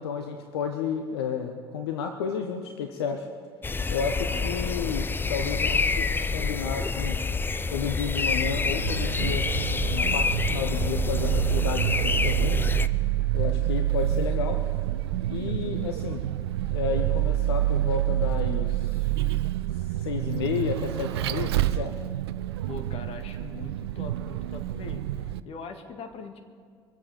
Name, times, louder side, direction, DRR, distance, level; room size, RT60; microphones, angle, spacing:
voice 1, 0.0-3.3 3.9-6.0 6.3-7.2 7.7-12.6 13.3-14.6 15.3-16.2 16.7-19.1 20.0-22.0, left 6 dB, 70° left, 4 dB, 1.0 m, -32 dB
sound 1, 3.6-12.9, left 4 dB, 15° left, 0.6 m, -27 dB
voice 2, 4.3-4.9 5.5-5.8 22.7-26.4, left 4 dB, 45° left, 5 dB, 1.9 m, -42 dB
Vehicle, 8.5-25.4, right 13 dB, 70° right, 0.5 m, -28 dB
23.5 x 8.3 x 6.9 m, 2.1 s
figure-of-eight pair, 65°, 14 cm